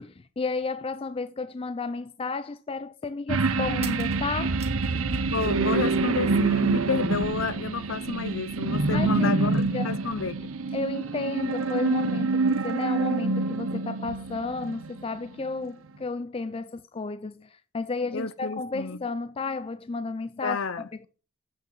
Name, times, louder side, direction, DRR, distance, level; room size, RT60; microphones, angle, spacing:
voice 1, 0.0-4.6 8.9-9.9 10.7-20.6, left 3 dB, 25° left, 0.4 m, -32 dB
sound 1, 1.5-1.6 3.7-5.7 6.0-6.9, right 7 dB, 30° right, 1.7 m, -46 dB
sound 2, 3.3-15.1 15.4-15.5, right 3 dB, 70° right, 0.9 m, -26 dB
voice 2, 4.9-10.5 18.1-19.0 20.4-20.9, left 4 dB, 60° left, 0.8 m, -31 dB
8.1 x 6.4 x 7.6 m
head